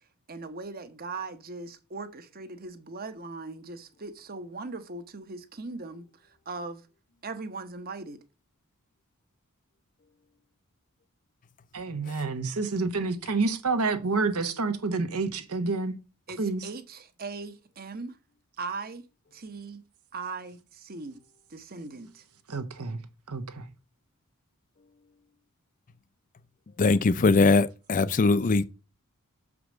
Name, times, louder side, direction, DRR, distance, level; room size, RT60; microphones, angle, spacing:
voice 1, 0.3-6.9 7.2-8.2 16.3-18.2 18.6-19.0 19.3-19.8 20.1-21.2 21.5-22.2, right 3 dB, 45° right, 1.0 m, -39 dB
voice 2, 11.7-15.9 16.4-16.6 22.5-23.0 23.3-23.7, right 3 dB, 80° right, 1.1 m, -28 dB
voice 3, 26.8-28.6, left 3 dB, 35° left, 0.4 m, -21 dB
6.4 x 4.9 x 6.1 m
head